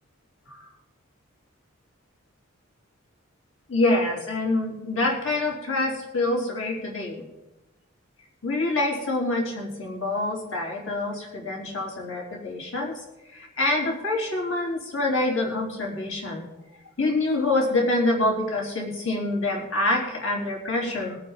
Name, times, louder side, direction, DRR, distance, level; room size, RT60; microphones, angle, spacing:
voice 1, 3.7-7.2 8.4-13.0 13.3-16.5 17.0-21.2, left 2 dB, 70° left, -1 dB, 4.4 m, -26 dB
22.0 x 8.7 x 5.3 m, 0.98 s
head